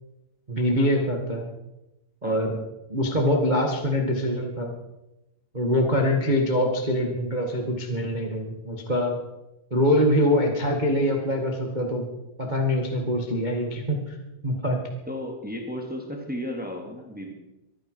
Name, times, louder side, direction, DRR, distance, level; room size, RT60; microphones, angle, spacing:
voice 1, 0.5-1.5 2.2-2.6 2.9-4.7 5.5-9.2 9.7-12.1 12.4-14.2 14.4-14.8, equal, 45° right, 1 dB, 0.5 m, -24 dB
voice 2, 15.1-17.3, left 1 dB, 5° right, 1 dB, 1.8 m, -34 dB
24.0 x 9.8 x 5.0 m, 0.95 s
omnidirectional pair, 4.6 m